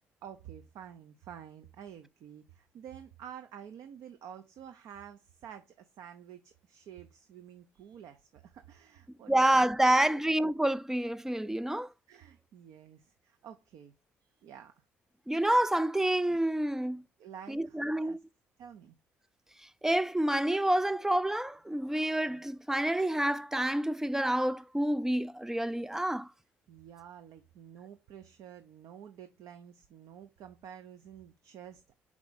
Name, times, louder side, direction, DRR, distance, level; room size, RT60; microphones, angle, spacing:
voice 1, 0.2-10.2 12.1-13.9 14.2-14.7 17.2-18.2 18.6-19.0 26.7-31.8, right 9 dB, 65° right, 0.7 m, -50 dB
voice 2, 9.3-11.9 15.3-17.0 17.5-18.2 19.8-26.3, right 1 dB, 5° right, 0.4 m, -28 dB
4.8 x 4.8 x 4.1 m
hypercardioid pair, 55°, 6 cm